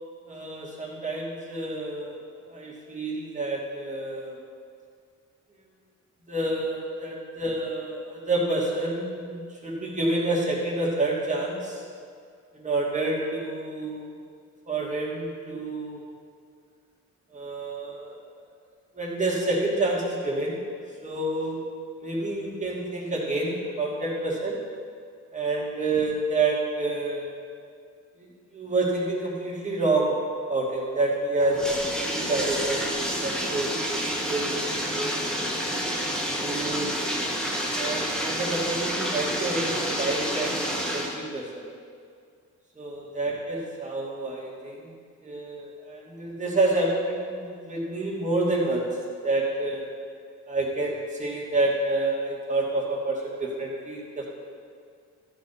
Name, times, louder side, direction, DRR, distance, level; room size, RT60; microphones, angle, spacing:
voice 1, 0.3-2.2 2.5-4.4 6.3-11.8 12.5-14.0 14.7-16.1 17.3-18.1 18.9-20.6 21.0-21.6 22.0-24.6 25.3-27.3 28.2-28.3 28.5-30.2 30.5-31.6 32.0-33.7 34.0-34.5 34.8-35.2 36.3-37.0 37.7-41.6 42.7-44.9 45.2-48.8 49.2-49.8 50.5-54.3, right 2 dB, 25° right, -4 dB, 2.6 m, -28 dB
Bathtub (filling or washing), 31.4-41.2, equal, ahead, 1.6 m, -29 dB
13.5 x 5.2 x 5.6 m, 2.2 s
cardioid pair, 90°, 30 cm